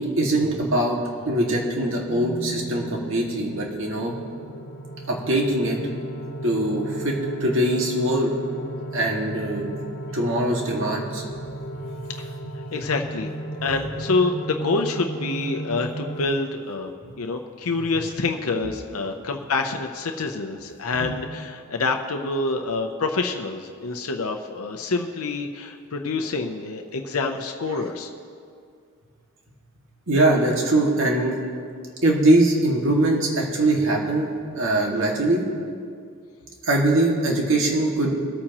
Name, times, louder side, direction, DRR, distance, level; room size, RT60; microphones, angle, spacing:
voice 1, 0.0-4.1 5.1-5.8 6.4-7.1 7.4-8.3 8.9-11.2 17.0-17.1 21.0-21.1 30.1-31.4 32.0-34.3 34.5-35.5 36.6-38.1, right 1 dB, 60° right, -1 dB, 2.1 m, -22 dB
sound 1, 2.1-16.3, right 2 dB, 50° left, 0.9 m, -35 dB
voice 2, 12.7-13.3 13.6-16.9 17.2-28.1, left 3 dB, 85° left, 4 dB, 0.7 m, -27 dB
23.0 x 8.7 x 3.0 m, 2.3 s
head